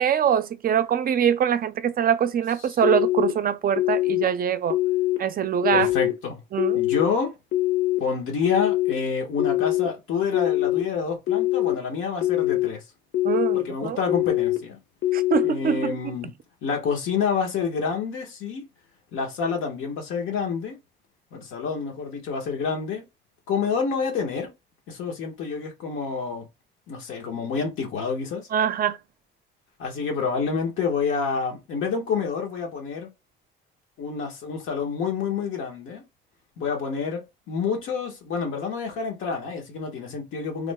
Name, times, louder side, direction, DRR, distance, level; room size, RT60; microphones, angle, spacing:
voice 1, 0.0-4.8 5.2-5.9 6.5-6.8 13.2-14.0 15.1-16.0 28.5-29.0, right 8 dB, 45° right, 0.4 m, -23 dB
sound 1, 2.8-3.3 3.8-4.2 4.7-5.2 5.6-6.1 6.6-7.1 7.5-8.0 8.4-8.9 9.4-9.9 10.3-10.8 11.3-11.7 12.2-12.7 13.1-13.6 14.1-14.6 15.0-15.5, left 16 dB, 60° left, 1.0 m, -23 dB
voice 2, 5.7-6.4 6.7-7.3 8.0-12.8 13.5-14.8 15.4-16.3 16.6-18.6 19.1-20.8 21.3-23.1 23.5-24.5 24.9-26.5 26.9-28.5 29.8-33.1 34.0-36.0 36.6-40.7, left 5 dB, 85° left, 1.3 m, -28 dB
3.4 x 2.2 x 3.5 m
cardioid pair, 90°, 20 cm